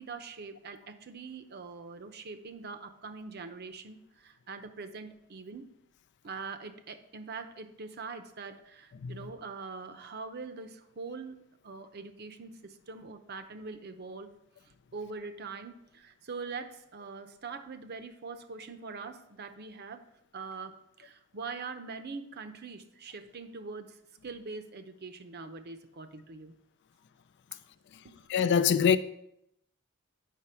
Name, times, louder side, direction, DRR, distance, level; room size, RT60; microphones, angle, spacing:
voice 1, 0.0-5.7 6.2-14.3 14.9-20.0 20.3-24.0 24.2-26.6 27.5-27.6 28.0-28.3, right 4 dB, 50° right, 0.7 m, -43 dB
voice 2, 28.3-29.0, left 7 dB, 55° left, 0.4 m, -23 dB
8.4 x 5.6 x 4.4 m
head